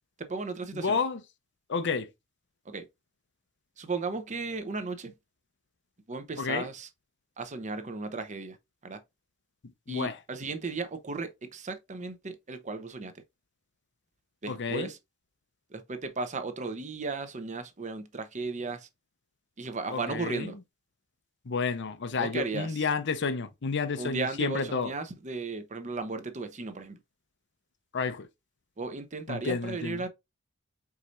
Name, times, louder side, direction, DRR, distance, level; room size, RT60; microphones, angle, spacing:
voice 1, 0.2-1.0 2.7-2.9 3.8-5.1 6.1-6.9 7.4-8.6 8.8-9.0 9.9-13.1 14.4-15.0 15.7-18.9 19.6-20.6 22.2-22.9 24.0-27.0 28.8-30.1, right 3 dB, 35° right, 0.8 m, -35 dB
voice 2, 0.7-1.2 1.7-2.1 6.4-6.7 9.9-10.1 14.5-14.9 19.9-20.5 21.5-24.9 27.9-28.3 29.3-30.0, left 5 dB, 55° left, 0.7 m, -30 dB
4.8 x 4.2 x 2.5 m
head